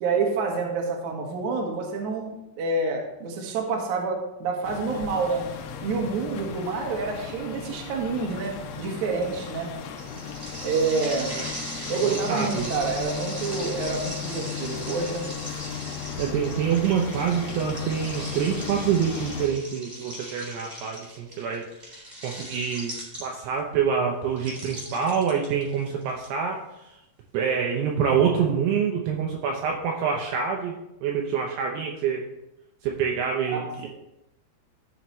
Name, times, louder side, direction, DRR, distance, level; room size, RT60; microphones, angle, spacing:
voice 1, 0.0-5.4 5.8-9.7 10.6-11.4 11.9-15.3 33.5-33.9, right 4 dB, 60° right, 0 dB, 2.1 m, -28 dB
sound 1, 4.6-19.5, left 6 dB, 85° left, 3.2 m, -36 dB
sound 2, 10.0-23.6 24.4-26.2, equal, 20° right, 1.5 m, -39 dB
voice 2, 12.0-12.7 16.2-21.6 21.9-26.6 27.3-32.2 32.8-33.9, right 7 dB, 75° right, 0 dB, 2.6 m, -26 dB
14.0 x 5.6 x 3.1 m, 0.88 s
omnidirectional pair, 5.2 m